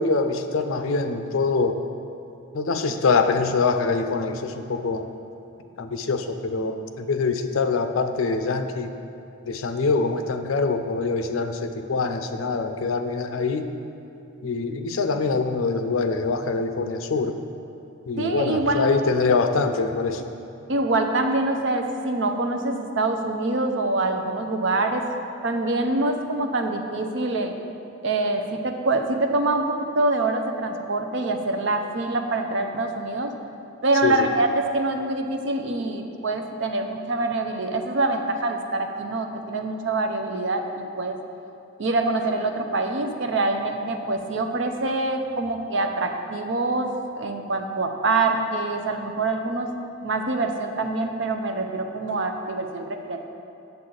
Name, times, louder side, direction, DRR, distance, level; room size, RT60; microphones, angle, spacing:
voice 1, 0.0-1.8 2.5-5.0 5.8-8.9 9.5-13.7 14.4-17.4 18.1-20.2 34.0-34.3, left 4 dB, 85° left, 7 dB, 0.5 m, -24 dB
voice 2, 18.2-18.9 20.7-25.0 25.4-27.5 28.0-33.3 33.8-41.2 41.8-46.9 47.2-49.7 50.0-53.3, right 2 dB, 65° right, 5 dB, 0.6 m, -25 dB
8.1 x 6.8 x 3.9 m, 2.7 s
head